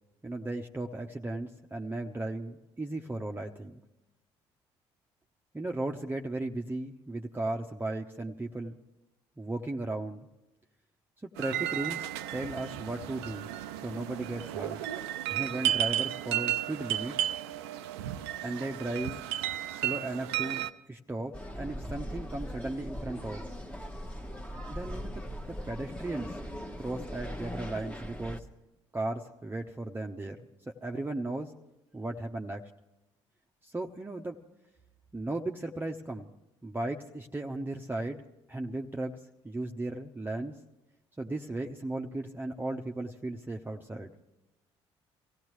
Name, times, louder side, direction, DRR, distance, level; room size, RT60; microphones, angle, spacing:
voice 1, 0.2-3.8 5.5-8.8 9.4-10.2 11.4-13.5 13.8-14.8 15.3-17.2 18.4-19.2 19.7-23.4 24.7-26.4 26.8-28.4 28.9-31.5 31.9-32.7 33.6-34.4 35.1-36.3 36.6-38.2 38.5-39.2 39.4-40.6 41.2-44.1, right 2 dB, 15° right, 2 dB, 0.8 m, -36 dB
sound 1, 11.4-20.7, right 12 dB, 80° right, 0.5 m, -33 dB
sound 2, 21.3-28.4, equal, 10° left, 1.2 m, -40 dB
24.0 x 16.5 x 3.2 m, 0.99 s
hypercardioid pair, 50°, 13 cm